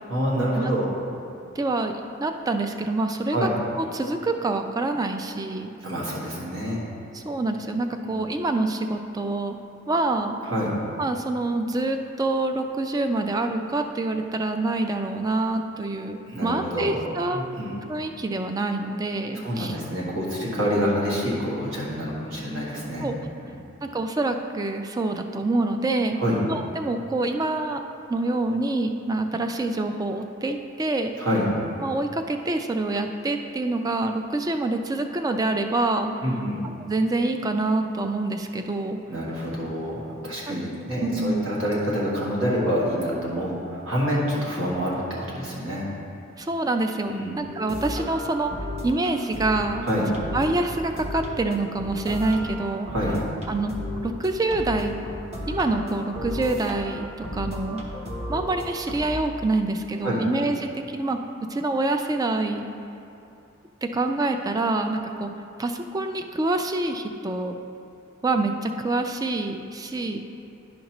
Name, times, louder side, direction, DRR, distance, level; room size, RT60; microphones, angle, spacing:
voice 1, 0.1-0.9 3.3-3.5 5.8-6.8 8.0-8.1 10.4-10.7 16.3-17.0 17.3-17.7 19.3-23.1 23.4-23.6 26.2-26.4 31.2-31.5 36.2-36.6 39.1-45.9 47.1-47.4 49.8-50.1 52.9-53.3 60.0-60.2, equal, 65° right, -5 dB, 1.6 m, -27 dB
voice 2, 1.6-1.9 2.2-3.5 3.8-5.7 7.1-9.6 9.9-10.4 11.0-17.5 17.9-19.8 23.0-23.2 23.8-27.8 28.1-31.1 31.8-36.1 36.8-39.0 40.5-40.6 41.0-41.5 46.4-48.5 48.8-49.9 50.3-52.9 53.5-53.7 54.0-55.0 55.5-57.1 57.3-57.8 58.3-61.2 61.5-62.7 63.8-65.3 65.6-67.6 68.2-70.2, right 2 dB, 20° right, 6 dB, 0.3 m, -26 dB
sound 1, 47.4-59.2, left 1 dB, 35° right, 0.9 m, -34 dB
11.0 x 5.2 x 3.0 m, 2.7 s
head